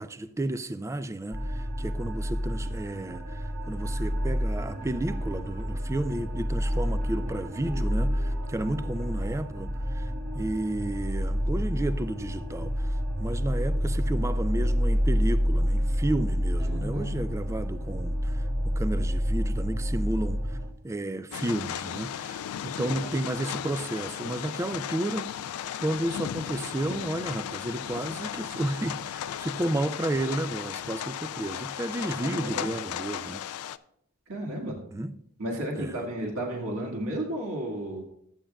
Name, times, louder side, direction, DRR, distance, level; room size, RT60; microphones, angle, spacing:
voice 1, 0.0-20.6 20.8-25.5 25.8-33.5 34.9-35.1 35.8-36.1, right 1 dB, 15° right, 0.3 m, -32 dB
sound 1, 1.3-20.7, equal, 55° right, 1.6 m, -28 dB
sound 2, 3.8-9.4, equal, 35° right, 1.2 m, -48 dB
voice 2, 16.6-17.5 22.8-23.1 32.2-32.6 34.3-34.8 35.4-38.0, right 1 dB, 70° right, 1.7 m, -33 dB
sound 3, 21.3-33.8, left 10 dB, 90° left, 0.3 m, -35 dB
13.5 x 8.6 x 2.3 m
head